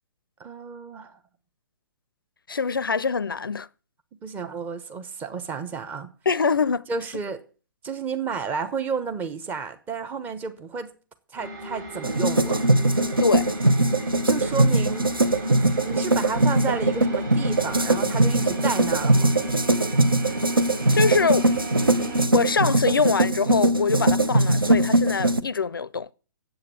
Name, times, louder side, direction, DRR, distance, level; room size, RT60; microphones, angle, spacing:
voice 1, 0.4-1.1 4.2-6.1 6.9-7.4 7.8-10.9 11.3-12.6 14.2-15.1 15.8-19.4, right 5 dB, 15° right, 1.0 m, -31 dB
voice 2, 2.5-3.7 6.3-6.9 13.2-13.5 20.9-21.5 22.3-26.1, left 5 dB, 75° left, 0.4 m, -24 dB
sound 1, 11.4-22.3, equal, 45° right, 4.9 m, -35 dB
sound 2, 12.0-25.4, right 2 dB, 85° right, 0.8 m, -21 dB
8.4 x 8.0 x 7.0 m
figure-of-eight pair, 125°, 11 cm